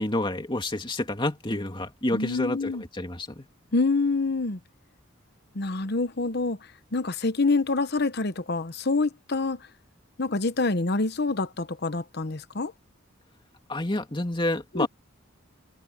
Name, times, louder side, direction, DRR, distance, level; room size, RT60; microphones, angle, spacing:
voice 1, 0.0-3.5 13.7-14.9, left 1 dB, 25° left, 2.4 m, -29 dB
voice 2, 2.1-2.8 3.7-4.6 5.5-6.6 6.9-9.6 10.2-12.7 14.7-14.9, left 3 dB, 55° left, 1.0 m, -26 dB
head